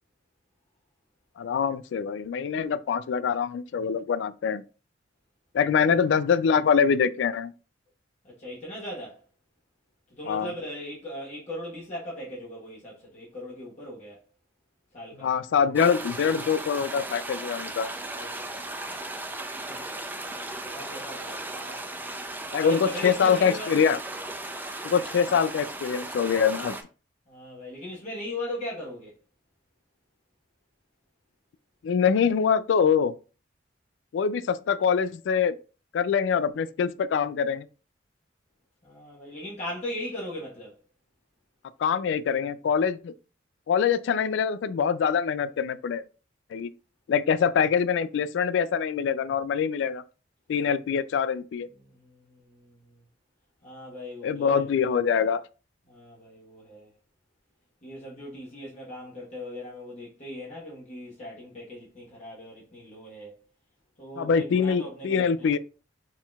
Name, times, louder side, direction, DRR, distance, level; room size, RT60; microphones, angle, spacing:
voice 1, 1.4-4.6 5.5-7.5 10.3-10.5 15.2-17.9 22.5-24.0 24.8-26.8 31.8-33.1 34.1-35.5 35.9-37.7 41.8-43.1 43.7-46.0 46.5-46.7 47.1-50.0 50.5-51.7 54.2-55.4 64.2-65.6, left 6 dB, 70° left, 0.3 m, -24 dB
voice 2, 8.2-9.2 10.1-14.2 14.9-15.3 18.1-18.6 19.7-19.8 20.6-21.8 22.6-23.8 27.3-29.1 38.8-40.7 51.8-53.0 53.6-54.6 55.9-56.9 57.8-63.4 64.0-65.5, left 1 dB, 40° left, 1.2 m, -39 dB
sound 1, 15.8-26.8, right 2 dB, 10° right, 0.4 m, -36 dB
4.3 x 3.8 x 2.3 m
head